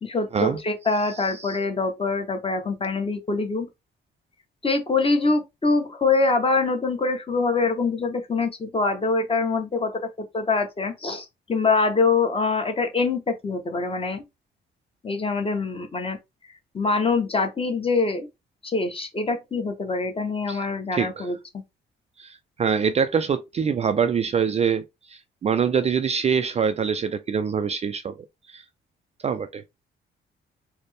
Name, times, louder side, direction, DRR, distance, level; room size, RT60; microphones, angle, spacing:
voice 1, 0.0-3.7 4.6-14.2 15.0-16.2 16.7-18.3 18.6-21.4, left 3 dB, 30° left, 1.0 m, -24 dB
voice 2, 1.1-1.6 20.5-20.6 20.9-21.3 22.2-28.2 28.5-28.6 29.2-29.6, right 6 dB, 35° right, 0.3 m, -25 dB
4.1 x 2.1 x 3.3 m
cardioid pair, 90°, 20 cm